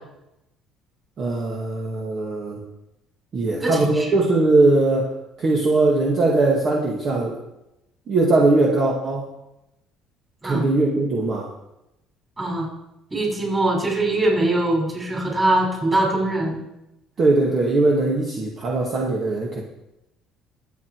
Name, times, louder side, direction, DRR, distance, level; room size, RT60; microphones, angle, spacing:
voice 1, 1.2-2.6 3.3-5.1 5.4-7.4 8.1-9.3 10.4-11.5 17.2-19.6, right 2 dB, 40° right, -2 dB, 2.3 m, -20 dB
voice 2, 3.6-4.2 10.4-10.7 12.4-12.7 13.1-16.6, right 1 dB, 15° right, -1 dB, 5.8 m, -22 dB
23.0 x 8.7 x 4.9 m, 0.90 s
cardioid pair, 140°, 0 cm